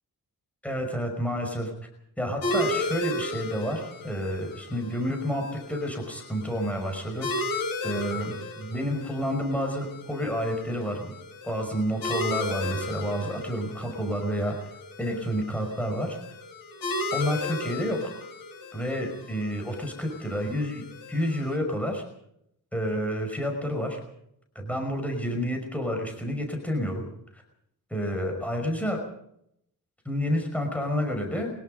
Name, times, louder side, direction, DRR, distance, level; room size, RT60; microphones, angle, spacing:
voice 1, 0.6-1.7 2.2-7.4 7.8-11.1 11.4-14.6 15.0-16.2 17.1-18.1 18.7-22.0 22.7-24.0 24.6-27.0 27.3-27.4 27.9-29.0 30.1-31.5, equal, 5° left, 3 dB, 5.4 m, -29 dB
sound 1, 2.4-21.6, left 2 dB, 80° left, 5.8 m, -35 dB
24.0 x 21.5 x 5.4 m, 0.75 s
wide cardioid pair, 140°, 34 cm